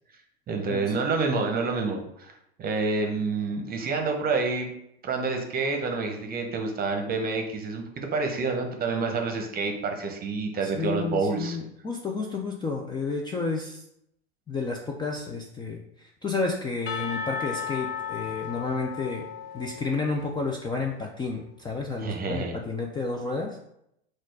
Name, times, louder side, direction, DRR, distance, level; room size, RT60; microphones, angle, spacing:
voice 1, 0.5-2.3 2.6-4.7 5.0-11.6 22.0-22.6, right 4 dB, 30° right, 4 dB, 0.9 m, -28 dB
voice 2, 10.6-13.8 14.5-19.2 19.5-23.6, left 4 dB, 15° left, 1 dB, 0.4 m, -31 dB
Percussion / Church bell, 16.9-20.8, left 7 dB, 65° left, 0.9 m, -35 dB
4.2 x 2.5 x 4.6 m, 0.75 s
hypercardioid pair, 95°, 32 cm